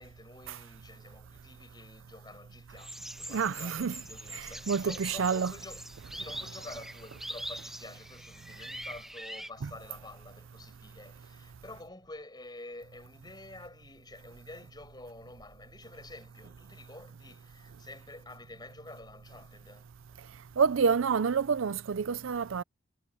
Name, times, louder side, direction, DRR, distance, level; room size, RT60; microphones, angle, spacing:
voice 1, 0.0-20.2, left 2 dB, 20° left, 6.8 m, -49 dB
sound 1, 2.8-9.5, right 1 dB, ahead, 1.6 m, -43 dB
voice 2, 3.3-3.9 4.3-5.5 20.6-22.6, right 6 dB, 65° right, 0.5 m, -28 dB
head